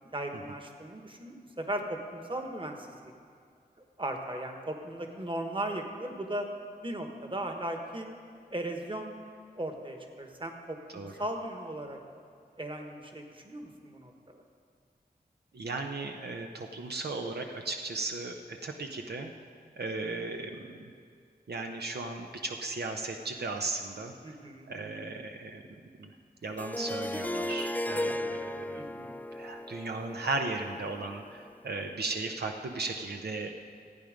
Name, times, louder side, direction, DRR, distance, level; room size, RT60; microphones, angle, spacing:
voice 1, 0.1-3.1 4.0-6.5 6.8-8.1 8.5-9.1 9.6-12.0 12.6-14.4 24.2-24.7 28.8-29.2, right 1 dB, 30° right, 3 dB, 1.3 m, -37 dB
voice 2, 15.5-19.3 19.8-20.9 21.5-24.4 24.7-25.6 26.0-26.1 26.4-29.1 29.3-33.5, right 3 dB, 80° right, 3 dB, 0.7 m, -36 dB
Harp, 26.6-31.5, left 1 dB, 10° left, 0.3 m, -36 dB
15.0 x 8.8 x 5.2 m, 2.3 s
wide cardioid pair, 70°, 17 cm